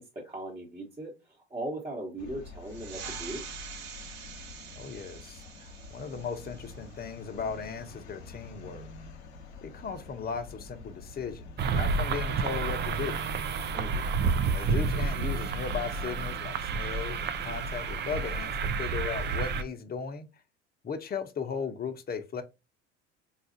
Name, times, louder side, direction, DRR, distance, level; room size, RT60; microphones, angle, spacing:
voice 1, 0.0-3.4 13.7-14.1, right 1 dB, 15° right, 1.2 m, -39 dB
sound 1, 2.2-19.5, left 3 dB, 85° left, 0.7 m, -47 dB
sound 2, 2.6-7.8, right 7 dB, 55° right, 0.9 m, -45 dB
voice 2, 4.8-8.9 9.6-13.2 14.5-20.3 20.8-22.4, left 6 dB, 30° left, 0.7 m, -37 dB
sound 3, 11.6-19.6, right 4 dB, 35° right, 0.4 m, -30 dB
4.0 x 2.4 x 2.6 m
hypercardioid pair, 75°, 33 cm